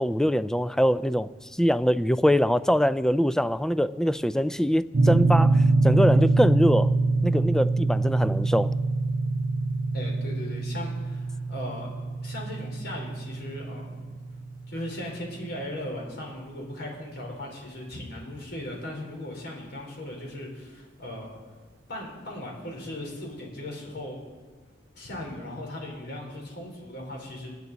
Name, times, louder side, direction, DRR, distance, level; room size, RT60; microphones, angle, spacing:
voice 1, 0.0-7.0 7.2-8.7, equal, 5° left, 14 dB, 0.3 m, -23 dB
sound 1, 4.9-15.1, right 3 dB, 45° right, 0.7 m, -25 dB
voice 2, 9.9-11.9 12.2-14.0 14.7-21.4 21.9-24.2 24.9-27.5, left 1 dB, 60° left, 0 dB, 4.1 m, -37 dB
25.5 x 9.3 x 4.0 m, 1.4 s
head